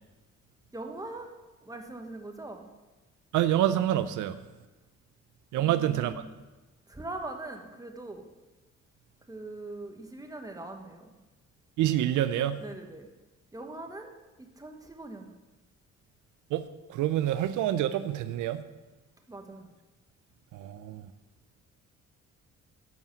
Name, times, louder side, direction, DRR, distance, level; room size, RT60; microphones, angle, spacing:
voice 1, 0.7-1.3 1.6-2.7 5.6-6.3 6.9-8.3 9.3-11.1 12.6-13.1 13.5-14.1 14.4-15.3 19.3-19.7, right 2 dB, 10° right, 4 dB, 1.3 m, -41 dB
voice 2, 3.3-4.4 5.5-6.1 11.8-12.6 16.5-18.6 20.5-21.0, right 12 dB, 80° right, 12 dB, 0.5 m, -27 dB
9.3 x 5.4 x 7.2 m, 1.1 s
cardioid pair, 90°, 30 cm